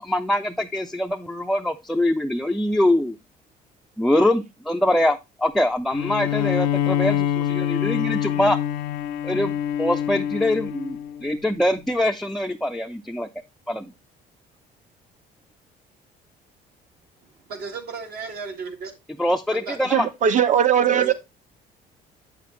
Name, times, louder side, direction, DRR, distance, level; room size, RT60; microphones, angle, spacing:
voice 1, 0.0-3.2 4.0-8.6 9.2-13.3 13.7-13.9 19.2-20.1, left 1 dB, ahead, 0.4 m, -23 dB
Bowed string instrument, 5.9-11.4, left 10 dB, 90° left, 0.6 m, -25 dB
voice 2, 17.5-18.9 19.5-19.8 20.9-21.1, right 5 dB, 65° right, 2.0 m, -34 dB
voice 3, 19.9-21.1, right 8 dB, 45° right, 0.9 m, -19 dB
7.9 x 6.8 x 3.1 m
cardioid pair, 110°, 17 cm